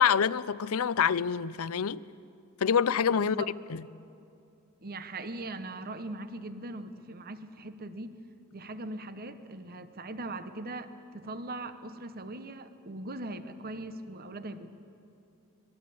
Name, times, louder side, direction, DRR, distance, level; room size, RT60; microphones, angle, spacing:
voice 1, 0.0-2.0 2.6-3.4, left 7 dB, 75° left, 0.5 m, -26 dB
voice 2, 3.1-3.5 4.8-8.2 8.5-14.7, right 2 dB, 45° right, 1.0 m, -40 dB
25.5 x 21.0 x 8.5 m
head